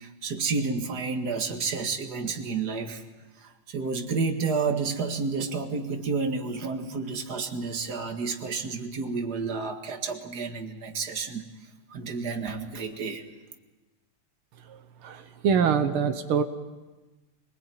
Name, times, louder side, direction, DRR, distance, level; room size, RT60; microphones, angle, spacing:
voice 1, 0.0-3.0 3.4-11.5 11.9-13.2, right 4 dB, 50° right, 4 dB, 2.4 m, -30 dB
voice 2, 14.6-16.4, right 7 dB, 85° right, 8 dB, 2.0 m, -25 dB
26.0 x 21.0 x 9.1 m, 1.2 s
omnidirectional pair, 2.3 m